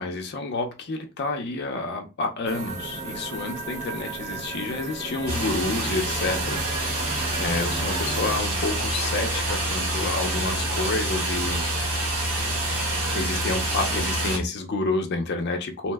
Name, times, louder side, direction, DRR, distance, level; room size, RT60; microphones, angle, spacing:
voice 1, 0.0-6.7 7.4-11.6 13.1-15.9, left 3 dB, 50° left, 4 dB, 0.5 m, -29 dB
sound 1, 2.5-8.4, right 3 dB, 35° right, 0.5 m, -35 dB
sound 2, 5.3-14.4, right 1 dB, 70° right, 1.2 m, -27 dB
2.7 x 2.0 x 3.3 m, 0.30 s
head